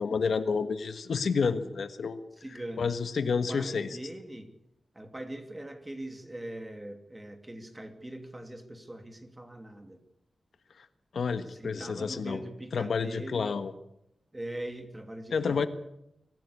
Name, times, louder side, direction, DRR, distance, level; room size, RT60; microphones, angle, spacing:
voice 1, 0.0-2.2 2.8-3.9 11.1-12.4 12.7-13.7 15.3-15.7, left 5 dB, 75° left, 10 dB, 1.4 m, -29 dB
voice 2, 2.3-3.0 3.2-4.5 4.9-10.0 11.5-13.6 14.3-15.7, right 1 dB, 15° right, 6 dB, 2.7 m, -42 dB
24.0 x 15.5 x 8.5 m, 0.82 s
wide cardioid pair, 135°, 0 cm